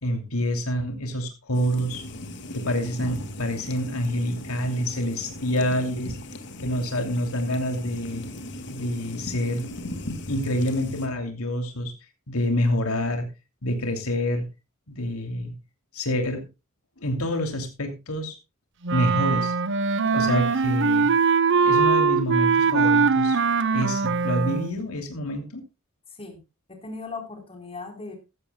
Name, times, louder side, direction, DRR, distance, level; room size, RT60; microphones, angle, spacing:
voice 1, 0.0-2.0 2.5-6.1 6.6-8.3 8.7-9.7 10.3-11.9 12.3-13.3 13.6-14.5 14.9-15.5 15.9-16.5 17.0-18.3 18.9-19.5 20.1-21.1 21.6-23.4 23.7-25.6, equal, 80° left, 5 dB, 2.9 m, -27 dB
sound 1, 1.5-11.1, left 1 dB, 55° left, 2.0 m, -38 dB
Wind instrument woodwind instrument, 18.8-24.7, right 5 dB, 60° right, 0.9 m, -21 dB
voice 2, 26.7-28.2, left 3 dB, 25° left, 4 dB, 4.1 m, -37 dB
15.5 x 14.0 x 2.3 m, 0.26 s
head